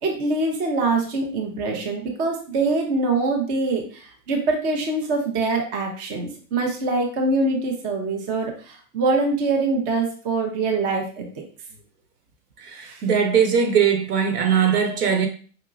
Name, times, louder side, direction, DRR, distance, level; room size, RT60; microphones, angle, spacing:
voice 1, 0.0-11.4, right 3 dB, 20° right, 2 dB, 0.4 m, -24 dB
voice 2, 12.6-15.3, right 7 dB, 70° right, 4 dB, 1.1 m, -20 dB
4.7 x 2.8 x 2.4 m, 0.42 s
hypercardioid pair, 120°, 48 cm